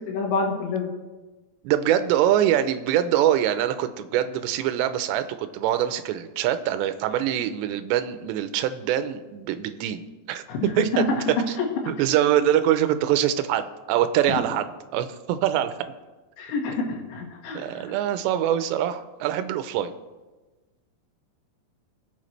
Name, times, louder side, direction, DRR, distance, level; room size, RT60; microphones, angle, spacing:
voice 1, 0.1-0.9 10.5-10.6 10.9-11.1 11.6-11.7 16.4-17.8, left 4 dB, 85° left, 1 dB, 4.0 m, -28 dB
voice 2, 1.6-11.1 11.5-11.6 11.9-14.7 14.9-15.9 17.5-19.9, right 11 dB, 85° right, 10 dB, 2.9 m, -24 dB
21.0 x 8.2 x 3.2 m, 1.2 s
omnidirectional pair, 5.1 m